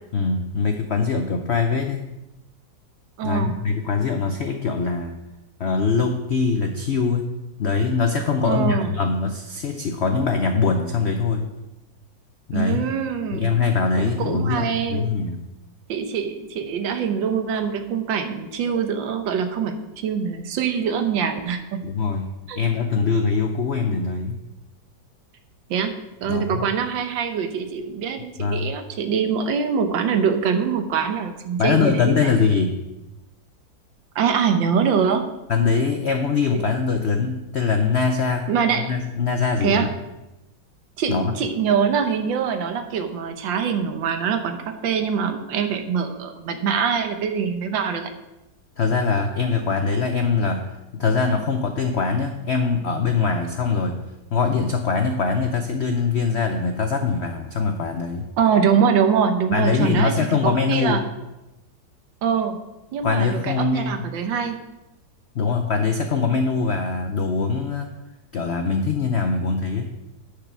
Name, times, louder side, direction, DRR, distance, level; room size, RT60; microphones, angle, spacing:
voice 1, 0.1-2.1 3.2-5.2 5.6-7.3 7.6-11.5 12.5-12.9 13.3-15.4 21.8-24.4 26.3-26.6 28.4-28.7 31.6-32.8 35.5-38.5 38.9-39.9 41.1-41.3 48.8-50.7 50.9-54.0 54.3-58.3 59.5-61.0 63.0-64.1 65.3-67.9 68.3-70.0, left 5 dB, 80° left, 5 dB, 0.5 m, -22 dB
voice 2, 3.2-3.6 8.4-8.9 12.5-13.5 14.0-15.1 15.9-21.8 22.5-22.6 25.7-26.0 26.2-32.2 34.1-35.3 36.5-36.6 38.5-38.9 39.6-39.9 41.0-48.1 58.4-60.1 60.4-61.0 62.2-62.6 62.9-64.6, right 6 dB, 80° right, 7 dB, 1.6 m, -23 dB
10.0 x 5.0 x 5.9 m, 0.99 s
omnidirectional pair, 2.0 m